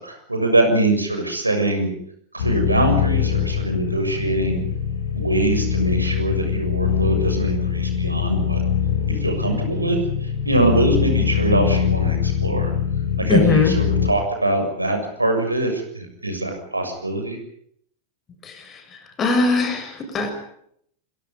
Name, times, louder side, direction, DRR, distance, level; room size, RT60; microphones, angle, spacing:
voice 1, 0.0-1.9 2.3-4.6 5.1-8.6 9.1-12.7 13.2-17.4, right 2 dB, 85° right, 5 dB, 6.8 m, -23 dB
sound 1, 2.4-14.1, left 8 dB, 65° left, 4.7 m, -23 dB
voice 2, 13.3-13.7 18.4-18.8 19.2-20.3, left 3 dB, 25° left, 7 dB, 6.6 m, -20 dB
27.5 x 23.5 x 5.5 m, 0.69 s
figure-of-eight pair, 90°, 0 cm